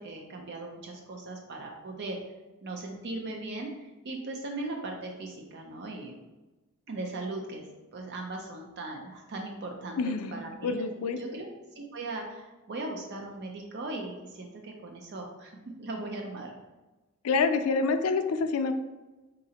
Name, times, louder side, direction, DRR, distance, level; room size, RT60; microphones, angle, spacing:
voice 1, 0.0-2.2 2.6-6.1 6.9-10.8 11.2-11.5 11.8-15.5 15.8-16.5, right 2 dB, 50° right, 1 dB, 0.5 m, -38 dB
voice 2, 10.0-10.3 10.6-11.2 17.2-18.7, left 4 dB, 80° left, 8 dB, 0.4 m, -27 dB
4.1 x 3.7 x 2.8 m, 1.1 s
head